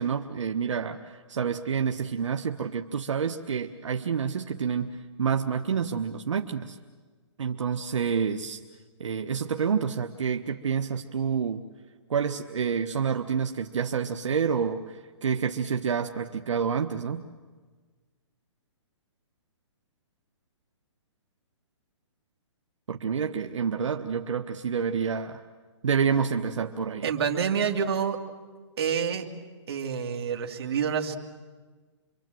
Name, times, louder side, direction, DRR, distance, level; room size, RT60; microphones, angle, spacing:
voice 1, 0.0-4.9 5.2-6.8 7.4-8.6 9.0-11.6 12.1-17.2 22.9-25.4 25.8-27.1, right 6 dB, 85° right, 5 dB, 1.2 m, -28 dB
voice 2, 27.0-28.2 28.8-29.3 29.7-31.2, right 7 dB, 55° right, 4 dB, 2.3 m, -27 dB
27.0 x 24.0 x 7.7 m, 1.4 s
hypercardioid pair, 165°, 15 cm